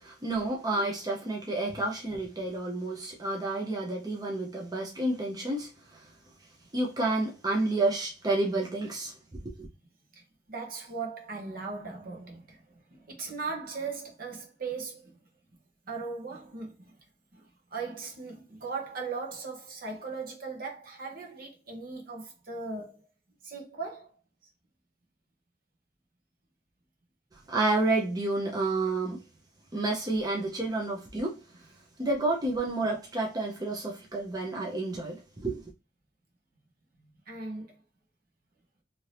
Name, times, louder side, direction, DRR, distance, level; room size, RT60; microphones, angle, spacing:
voice 1, 0.0-5.7 6.7-9.1 9.4-9.5 27.5-29.2 29.7-31.4 32.0-35.6, right 2 dB, 20° right, 0.7 m, -30 dB
voice 2, 10.5-12.6 12.9-15.1 15.9-16.9 17.3-23.0 23.4-24.1 37.0-37.8, right 4 dB, 55° right, 1.0 m, -38 dB
2.8 x 2.7 x 3.1 m
head